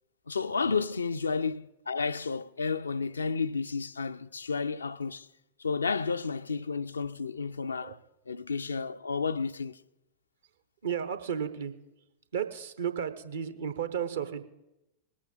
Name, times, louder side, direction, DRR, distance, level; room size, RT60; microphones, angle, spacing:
voice 1, 0.3-5.3 5.6-8.0 8.3-9.8, left 5 dB, 75° left, 0.4 m, -31 dB
voice 2, 10.8-11.7 12.3-14.4, right 8 dB, 65° right, 0.8 m, -33 dB
20.5 x 8.6 x 3.9 m
figure-of-eight pair, 90°, 0 cm